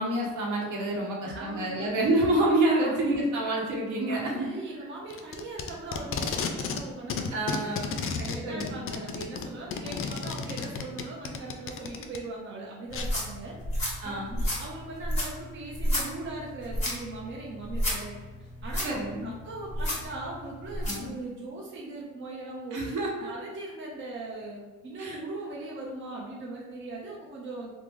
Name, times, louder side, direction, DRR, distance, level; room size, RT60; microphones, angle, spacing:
voice 1, 0.0-4.5 7.3-8.1 8.4-8.9 14.0-14.4 18.8-19.3 20.8-21.1 22.7-23.3 25.0-25.2, right 1 dB, 85° right, -2 dB, 0.9 m, -28 dB
voice 2, 1.2-1.9 2.8-3.2 4.1-7.8 8.0-13.6 14.0-14.1 14.5-22.8 23.2-27.7, right 2 dB, 40° right, -3 dB, 0.7 m, -40 dB
Packing tape duct tape, 5.1-6.8 7.1-12.2 12.9-13.1, left 5 dB, 45° left, 0.4 m, -33 dB
sound 1, 12.9-21.1, equal, 25° left, 1.4 m, -32 dB
3.4 x 2.1 x 3.0 m, 1.3 s
cardioid pair, 90°, 30 cm